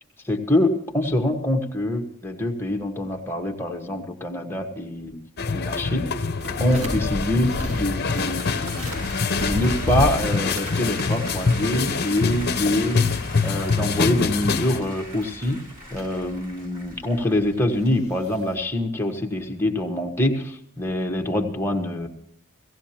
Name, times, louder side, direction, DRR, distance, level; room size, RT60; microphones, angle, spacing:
voice 1, 0.2-5.2 5.5-6.1 6.6-9.1 9.4-13.1 13.4-15.6 15.9-22.1, left 1 dB, 10° left, 1 dB, 1.4 m, -25 dB
sound 1, 5.4-14.8, left 4 dB, 50° left, 0.8 m, -25 dB
sound 2, 6.4-18.6, left 1 dB, 85° right, 6.9 m, -35 dB
sound 3, 7.6-17.9, equal, 45° right, 5.1 m, -41 dB
17.5 x 17.0 x 2.9 m, 0.74 s
head